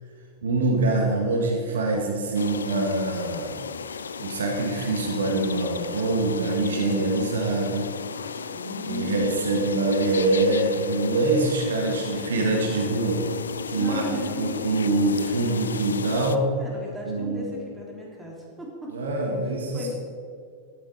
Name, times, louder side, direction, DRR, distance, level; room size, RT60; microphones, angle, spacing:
voice 1, 0.4-3.5 4.2-7.9 8.8-13.2 13.7-14.1 14.4-16.5 17.1-17.5 18.9-19.9, right 2 dB, 65° right, 0 dB, 1.9 m, -24 dB
sound 1, 2.4-16.4, left 6 dB, 70° left, 0.4 m, -35 dB
voice 2, 8.5-9.7 13.8-14.8 16.6-18.9 19.7-19.9, left 1 dB, 10° right, -3 dB, 3.8 m, -36 dB
12.5 x 12.0 x 4.9 m, 2.3 s
figure-of-eight pair, 90°, 0 cm